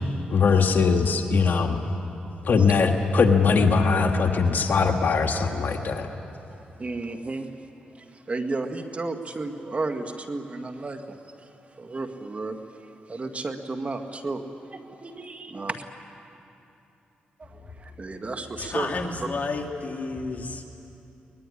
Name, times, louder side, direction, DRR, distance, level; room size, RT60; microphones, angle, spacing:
voice 1, 0.3-1.8 2.4-6.1, left 5 dB, 65° left, 4 dB, 1.9 m, -21 dB
voice 2, 6.8-7.5 8.0-11.2 11.8-12.6 13.1-15.8 17.4-18.9, right 3 dB, 40° right, 6 dB, 1.9 m, -33 dB
voice 3, 18.5-20.6, left 3 dB, 45° left, 1 dB, 3.0 m, -31 dB
23.0 x 20.5 x 10.0 m, 2.8 s
cardioid pair, 60°, 3 cm